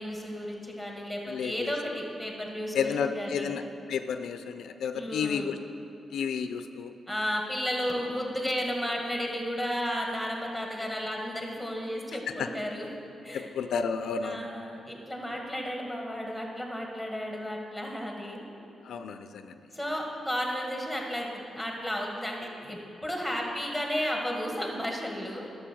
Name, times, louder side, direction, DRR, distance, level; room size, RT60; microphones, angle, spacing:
voice 1, 0.0-3.6 4.9-5.5 7.1-12.9 13.2-13.5 14.2-18.5 19.7-25.5, equal, 5° right, 0 dB, 1.8 m, -33 dB
voice 2, 1.3-1.7 2.7-3.6 3.9-5.6 6.1-6.9 12.4-12.5 13.3-14.5 18.8-19.6, left 6 dB, 85° left, 8 dB, 0.4 m, -31 dB
11.5 x 6.6 x 6.2 m, 2.8 s
cardioid pair, 110°, 0 cm